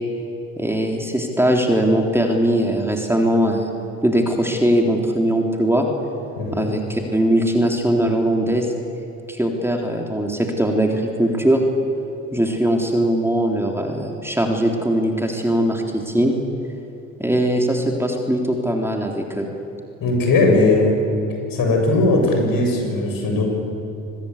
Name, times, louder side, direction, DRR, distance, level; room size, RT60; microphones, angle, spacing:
voice 1, 0.6-3.7 4.0-5.9 6.5-8.7 9.3-11.6 12.3-16.3 17.2-19.5, right 1 dB, 5° right, 1 dB, 3.5 m, -20 dB
voice 2, 6.4-6.7 20.0-21.0 21.5-23.5, left 2 dB, 55° left, 2 dB, 7.2 m, -18 dB
24.5 x 21.0 x 8.3 m, 2.7 s
hypercardioid pair, 55°, 40 cm